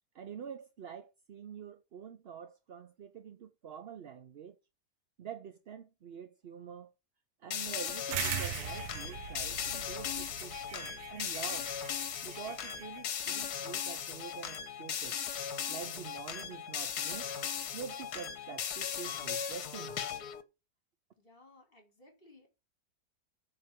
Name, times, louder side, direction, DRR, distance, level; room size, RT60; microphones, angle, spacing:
voice 1, 0.1-4.6 5.2-6.9 7.4-11.7 12.2-15.2 15.7-17.3 17.7-20.0, right 7 dB, 55° right, 0.7 m, -46 dB
sound 1, 7.5-20.4, left 8 dB, 65° left, 1.5 m, -38 dB
sound 2, 8.1-13.0, right 12 dB, 80° right, 1.4 m, -41 dB
voice 2, 21.2-22.5, left 2 dB, 30° left, 4.1 m, -59 dB
9.0 x 4.4 x 7.4 m
omnidirectional pair, 1.8 m